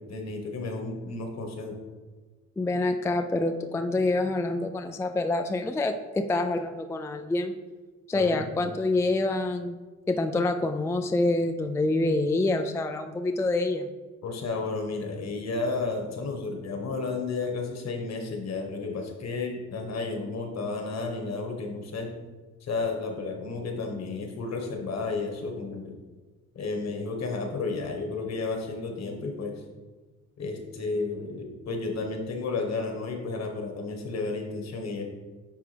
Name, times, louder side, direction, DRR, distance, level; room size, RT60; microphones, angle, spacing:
voice 1, 0.0-1.8 8.1-8.7 14.2-22.1 22.6-25.9 26.5-29.5 30.4-35.0, left 3 dB, 60° left, 2 dB, 1.4 m, -32 dB
voice 2, 2.6-7.6 8.1-9.8 10.1-13.9, left 2 dB, 10° left, 6 dB, 0.3 m, -26 dB
10.0 x 3.4 x 3.4 m, 1.3 s
cardioid pair, 90°, 30 cm